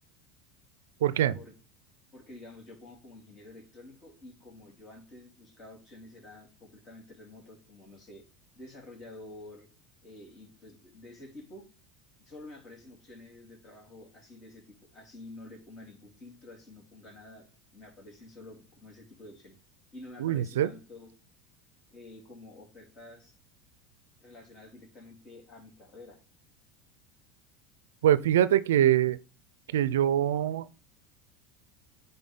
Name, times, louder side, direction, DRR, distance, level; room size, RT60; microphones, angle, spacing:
voice 1, 1.0-1.4 20.2-20.7 28.0-29.2 29.7-30.7, right 11 dB, 85° right, 0.4 m, -24 dB
voice 2, 2.1-8.2 8.5-9.7 10.0-11.6 12.2-17.5 17.7-19.6 19.9-21.1 21.9-23.3 24.2-26.2, left 2 dB, 35° left, 3.4 m, -49 dB
9.9 x 3.9 x 3.7 m
hypercardioid pair, 95°, 0 cm